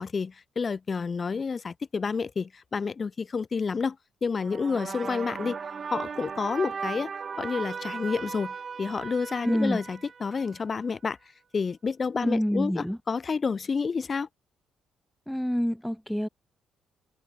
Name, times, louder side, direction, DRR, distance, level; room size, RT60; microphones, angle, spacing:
voice 1, 0.0-4.0 4.2-5.6 5.9-7.1 7.4-11.2 11.5-14.3, left 5 dB, 35° left, 1.5 m, -29 dB
sound 1, 4.4-10.8, right 6 dB, 40° right, 1.2 m, -37 dB
voice 2, 9.4-9.8 12.2-13.0 15.3-16.3, equal, ahead, 0.5 m, -27 dB
cardioid pair, 90°, 0 cm